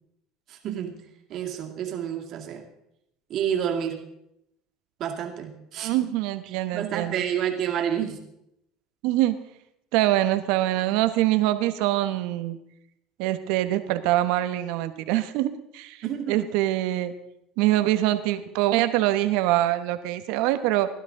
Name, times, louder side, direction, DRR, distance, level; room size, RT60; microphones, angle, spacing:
voice 1, 0.5-1.0 1.3-2.6 3.3-4.0 5.0-5.9 6.7-8.2 16.0-16.4, right 9 dB, 50° right, 2 dB, 2.2 m, -29 dB
voice 2, 5.8-7.2 9.0-9.4 9.9-12.6 13.2-17.1 17.6-20.9, right 15 dB, 75° right, 10 dB, 1.1 m, -24 dB
16.5 x 11.5 x 3.8 m, 0.81 s
supercardioid pair, 120°, 0 cm